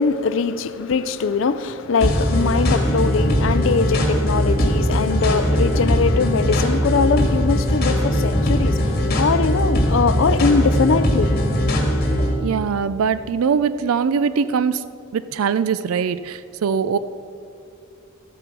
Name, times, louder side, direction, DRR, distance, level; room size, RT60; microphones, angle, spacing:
voice 1, 0.0-11.4, left 5 dB, 60° left, 0.4 m, -21 dB
sound 1, 2.0-12.3, equal, 45° left, 1.9 m, -20 dB
voice 2, 12.4-14.9 15.1-17.0, right 6 dB, 80° right, 0.4 m, -22 dB
13.5 x 8.0 x 6.1 m
head